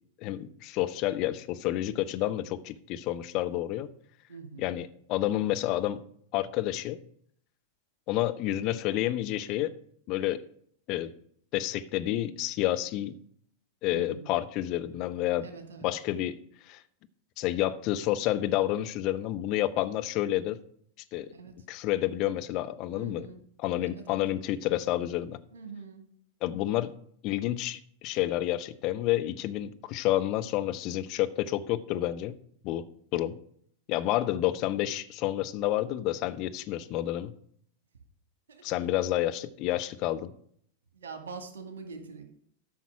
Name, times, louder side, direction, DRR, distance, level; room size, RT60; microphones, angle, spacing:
voice 1, 0.2-3.9 4.6-6.0 6.3-7.0 8.1-9.7 10.1-10.4 10.9-11.1 11.5-13.2 13.8-15.5 15.8-16.4 16.7-16.8 17.4-20.6 21.1-21.3 21.7-23.3 23.6-25.4 26.4-26.9 27.2-32.3 32.6-32.8 33.1-33.3 33.9-37.3 38.6-40.3, left 14 dB, 40° left, 9 dB, 0.8 m, -29 dB
voice 2, 4.3-4.8 13.9-14.3 15.4-15.9 21.3-21.6 22.9-23.4 24.0-24.2 25.5-26.0 38.5-38.7 40.9-42.3, right 5 dB, 65° right, 6 dB, 1.9 m, -44 dB
13.5 x 5.8 x 4.8 m, 0.63 s
figure-of-eight pair, 90°, 0 cm